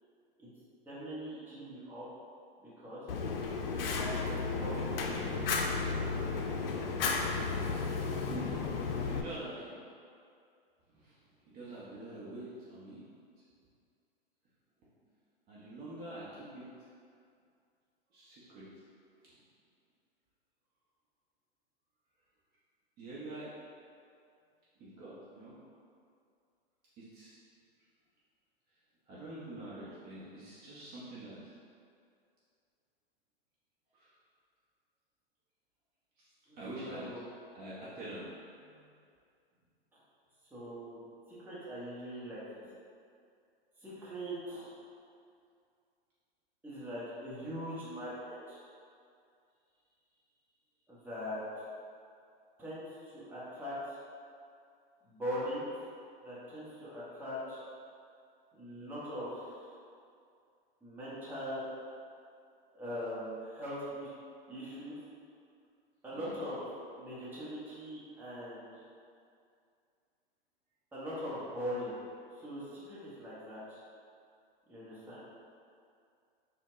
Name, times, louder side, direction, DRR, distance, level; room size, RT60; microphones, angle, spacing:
voice 1, 0.8-2.1 2.6-3.0 4.0-5.7 36.5-37.3 40.5-41.0 41.3-42.6 43.8-44.7 46.6-48.6 50.9-51.4 52.6-54.0 55.0-55.7 56.2-57.6 58.5-59.7 60.8-61.7 62.7-64.1 64.5-65.0 66.0-66.6 66.9-68.8 70.9-71.9 72.3-73.8 74.7-75.2, equal, 5° right, -10 dB, 1.0 m, -41 dB
Fire, 3.1-9.2, left 4 dB, 70° left, 0.5 m, -33 dB
voice 2, 9.1-9.8 11.0-11.1 11.5-13.0 15.5-16.6 18.1-18.7 23.0-23.5 24.8-25.5 27.0-27.3 29.1-31.4 33.9-34.1 36.6-37.1 37.5-38.3 38.6-38.9 66.2-66.3, right 1 dB, 30° right, -10 dB, 0.8 m, -45 dB
4.2 x 2.3 x 3.0 m, 2.3 s
hypercardioid pair, 105°, 30 cm